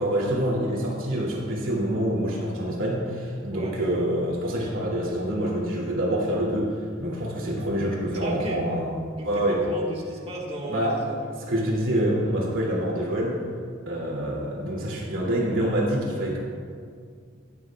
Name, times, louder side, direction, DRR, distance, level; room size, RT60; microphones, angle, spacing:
voice 1, 0.0-9.0 9.2-9.6 10.7-11.0 11.4-13.3 13.9-16.4, right 1 dB, 90° right, -5 dB, 2.7 m, -26 dB
voice 2, 8.2-8.6 9.2-11.3, right 1 dB, 30° right, -3 dB, 1.7 m, -34 dB
15.0 x 9.7 x 2.4 m, 2.1 s
head